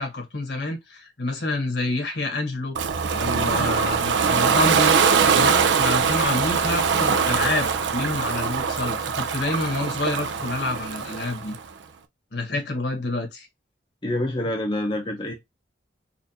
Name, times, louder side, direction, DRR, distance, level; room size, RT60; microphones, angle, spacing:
voice 1, 0.0-2.8 3.1-5.0 5.3-11.6 12.3-13.5, left 2 dB, 65° left, 1.3 m, -28 dB
Ocean, 2.7-11.6, right 6 dB, 75° right, 0.5 m, -22 dB
voice 2, 14.0-15.3, left 1 dB, 25° left, 0.6 m, -26 dB
4.2 x 2.5 x 2.7 m
head